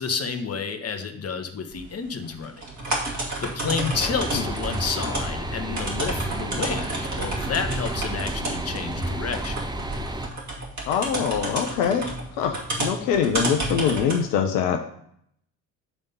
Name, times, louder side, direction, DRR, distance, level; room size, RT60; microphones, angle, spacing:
voice 1, 0.0-2.6 3.4-9.6, left 5 dB, 30° left, 7 dB, 1.1 m, -30 dB
sound 1, 1.7-14.2, right 2 dB, 35° right, 2.4 m, -31 dB
sound 2, 3.9-10.3, right 1 dB, 10° right, 0.7 m, -31 dB
voice 2, 10.9-14.8, left 8 dB, 70° left, 4 dB, 0.8 m, -24 dB
8.4 x 3.6 x 5.3 m, 0.69 s
hypercardioid pair, 50°, 47 cm